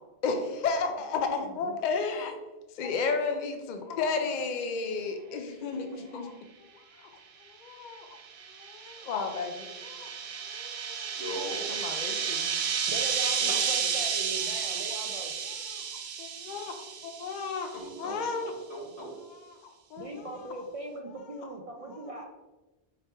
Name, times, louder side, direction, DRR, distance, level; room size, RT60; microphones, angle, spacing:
voice 1, 0.2-2.3 2.7-6.3 6.6-6.7 7.0-7.1 7.4-8.2 8.5-10.1 10.4-11.2 11.7-12.5 13.4-13.6 13.8-13.9 14.5-14.7 15.5-16.8 17.0-18.5 19.3-20.5 21.3-21.4 21.9-22.1, left 4 dB, 55° left, 5 dB, 0.6 m, -33 dB
sound 1, 7.9-17.7, right 7 dB, 80° right, 0.8 m, -32 dB
voice 2, 11.1-11.7 17.7-19.2, equal, 80° left, -5 dB, 1.7 m, -39 dB
voice 3, 12.9-15.3 20.0-22.3, right 2 dB, 55° right, 0 dB, 0.4 m, -40 dB
4.9 x 3.4 x 2.9 m, 1.1 s
omnidirectional pair, 1.0 m